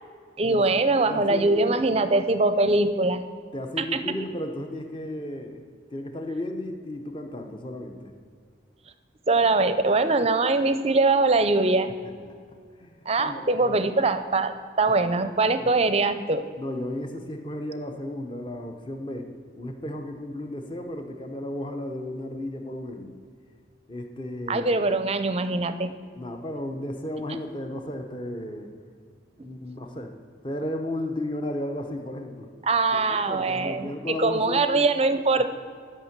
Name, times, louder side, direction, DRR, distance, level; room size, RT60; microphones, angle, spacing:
voice 1, 0.4-3.2 3.8-4.0 9.3-11.9 13.1-16.4 24.5-25.9 32.6-35.5, right 3 dB, 30° right, 11 dB, 0.5 m, -22 dB
voice 2, 1.1-1.5 3.5-5.6 5.9-8.1 12.3-12.4 12.8-12.9 13.2-13.8 14.9-15.0 15.6-15.7 16.6-23.1 23.9-24.7 26.1-28.7 29.4-30.1 30.4-32.5 32.9-34.7, left 1 dB, 25° left, 5 dB, 0.8 m, -34 dB
11.0 x 5.8 x 7.4 m, 2.1 s
head